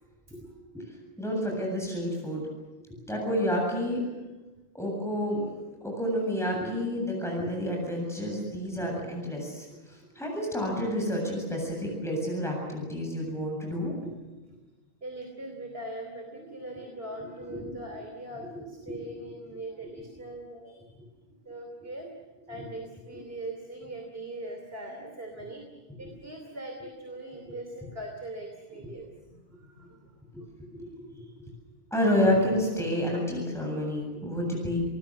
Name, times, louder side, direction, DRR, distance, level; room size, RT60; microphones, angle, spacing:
voice 1, 0.7-2.5 3.0-4.0 4.7-13.9 17.5-17.7 18.5-19.0 22.5-22.6 30.3-30.4 30.7-31.5 31.9-34.8, equal, 5° left, -1 dB, 7.8 m, -30 dB
voice 2, 13.9-14.4 15.0-20.9 21.4-22.1 22.5-29.1 29.3-30.1 30.8-30.9 34.3-34.4, right 1 dB, 70° right, 3 dB, 3.3 m, -41 dB
29.5 x 19.5 x 7.7 m, 1.2 s
omnidirectional pair, 1.0 m